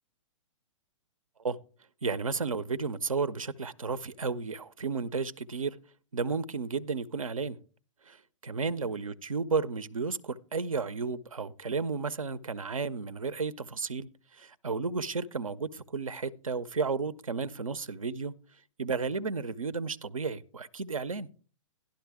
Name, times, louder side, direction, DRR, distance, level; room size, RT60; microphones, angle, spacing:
voice 1, 2.0-5.8 6.1-7.6 8.0-18.3 18.8-21.3, right 4 dB, 85° right, 0.6 m, -33 dB
11.5 x 11.5 x 3.4 m
figure-of-eight pair, 120°, 17 cm